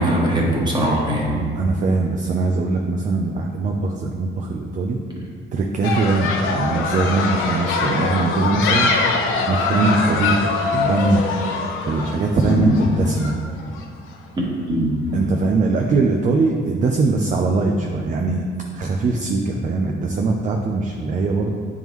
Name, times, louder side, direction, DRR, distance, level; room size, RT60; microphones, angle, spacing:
voice 1, 0.0-1.4 12.4-12.7 14.4-14.9, right 1 dB, 20° right, -4 dB, 1.3 m, -20 dB
voice 2, 1.3-5.0 5.5-9.1 9.5-11.3 11.8-13.5 15.1-18.4 18.7-21.6, right 3 dB, 40° right, 1 dB, 0.5 m, -21 dB
sound 1, 5.8-13.8, left 4 dB, 90° left, 0.7 m, -23 dB
9.1 x 3.6 x 3.1 m, 2.1 s
cardioid pair, 130°, 20 cm